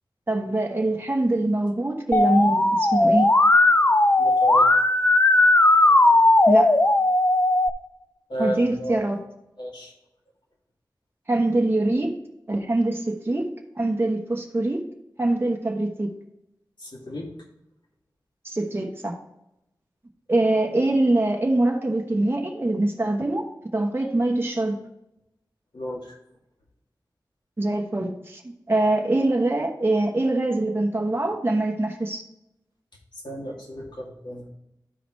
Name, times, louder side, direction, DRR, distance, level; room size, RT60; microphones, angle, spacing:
voice 1, 0.3-3.3 6.5-6.7 8.4-9.2 11.3-12.1 12.5-13.5 13.8-14.8 15.2-16.1 18.4-19.1 20.3-23.4 23.7-24.8 27.6-32.2, right 2 dB, 30° right, 1 dB, 1.0 m, -23 dB
Musical instrument, 2.1-7.7, left 2 dB, 25° left, 0.6 m, -17 dB
voice 2, 4.2-4.7 8.3-9.0 9.6-9.9 16.8-17.3 25.7-26.2 33.2-34.4, equal, 75° left, -2 dB, 2.3 m, -32 dB
12.5 x 4.9 x 3.1 m, 0.86 s
wide cardioid pair, 60°, 8 cm